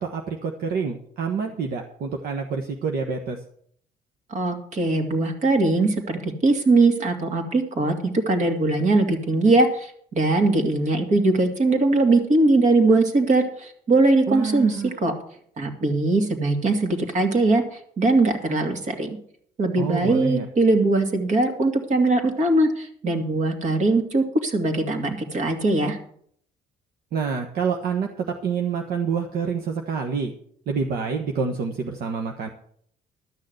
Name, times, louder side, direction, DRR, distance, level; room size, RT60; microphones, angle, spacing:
voice 1, 0.0-3.4 14.3-14.9 19.8-20.5 27.1-30.3 30.7-32.5, right 5 dB, 65° right, 3 dB, 1.3 m, -27 dB
voice 2, 4.3-7.9 8.3-15.1 15.6-19.2 19.6-26.0, right 2 dB, 45° right, 6 dB, 2.5 m, -21 dB
12.5 x 6.5 x 8.0 m, 0.63 s
cardioid pair, 110°, 17 cm